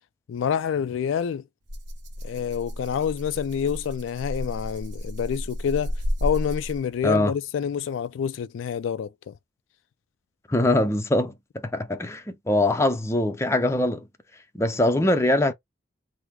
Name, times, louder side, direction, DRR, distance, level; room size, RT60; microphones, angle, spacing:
voice 1, 0.3-1.4 2.2-5.9 6.2-9.3, left 8 dB, 85° left, 0.3 m, -27 dB
Rattle (instrument), 1.7-7.0, equal, 65° right, 0.8 m, -32 dB
voice 2, 10.5-11.3 11.6-14.1 14.5-15.5, left 1 dB, 15° left, 0.5 m, -22 dB
3.5 x 2.1 x 2.9 m
head